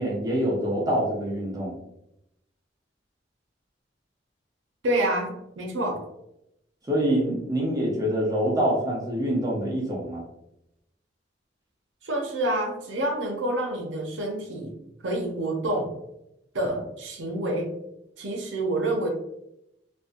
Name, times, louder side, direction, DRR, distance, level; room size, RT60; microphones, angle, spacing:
voice 1, 0.0-1.8 6.9-10.2, equal, 20° right, -4 dB, 0.6 m, -25 dB
voice 2, 4.8-6.1 12.0-14.8 15.0-15.9 16.5-17.7 18.2-19.1, right 1 dB, 80° right, 0 dB, 0.6 m, -28 dB
2.6 x 2.1 x 2.5 m, 0.83 s
head